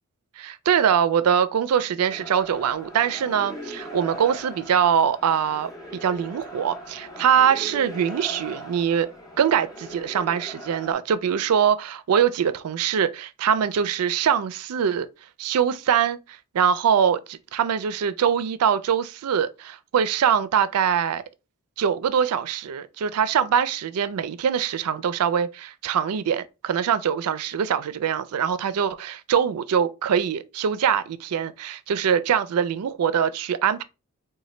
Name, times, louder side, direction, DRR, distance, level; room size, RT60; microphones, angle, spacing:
voice 1, 0.4-5.7 6.0-9.1 9.4-15.1 15.4-21.2 21.8-33.8, right 8 dB, 80° right, 0.4 m, -23 dB
sound 1, 2.1-10.9, right 1 dB, 15° left, 0.5 m, -39 dB
3.9 x 2.2 x 3.1 m
head